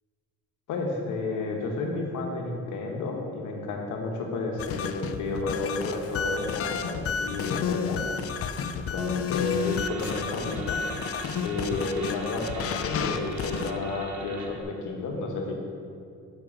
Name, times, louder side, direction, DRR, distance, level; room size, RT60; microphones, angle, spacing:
voice 1, 0.7-8.0 8.3-8.4 8.8-10.8 11.4-15.5, left 3 dB, 80° left, 1 dB, 1.1 m, -31 dB
sound 1, 4.6-13.7, left 6 dB, 50° left, 0.4 m, -31 dB
sound 2, 9.3-14.6, right 3 dB, 65° right, 1.1 m, -41 dB
5.9 x 4.6 x 5.9 m, 2.4 s
cardioid pair, 90°, 30 cm